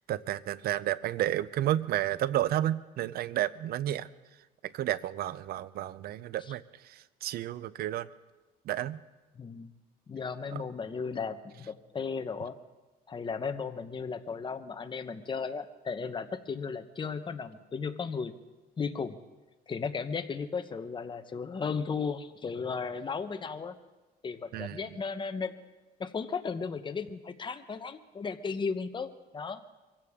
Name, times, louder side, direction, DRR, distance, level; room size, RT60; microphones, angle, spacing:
voice 1, 0.1-4.1 4.7-8.1 8.7-9.0 10.5-10.6 24.5-24.9, right 13 dB, 65° right, 17 dB, 0.6 m, -31 dB
voice 2, 9.3-9.7 10.1-12.5 13.1-18.3 18.8-19.2 19.7-23.8 24.2-25.5 26.0-29.6, left 5 dB, 30° left, 9 dB, 1.1 m, -35 dB
24.0 x 16.0 x 3.7 m, 1.2 s
cardioid pair, 110°, 17 cm